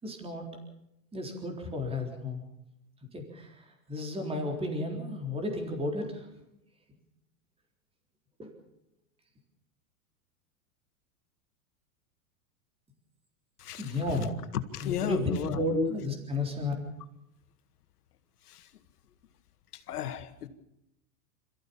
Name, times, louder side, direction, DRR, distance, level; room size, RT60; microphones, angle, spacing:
voice 1, 0.0-0.5 1.1-2.4 3.1-6.3 8.4-8.5 13.8-14.3 14.8-16.7, left 1 dB, 15° right, 2 dB, 4.0 m, -33 dB
voice 2, 13.6-13.9 14.7-15.9 18.5-18.7 19.7-20.5, left 9 dB, 90° left, 9 dB, 2.0 m, -34 dB
27.0 x 15.0 x 7.2 m, 0.86 s
supercardioid pair, 135°, 44 cm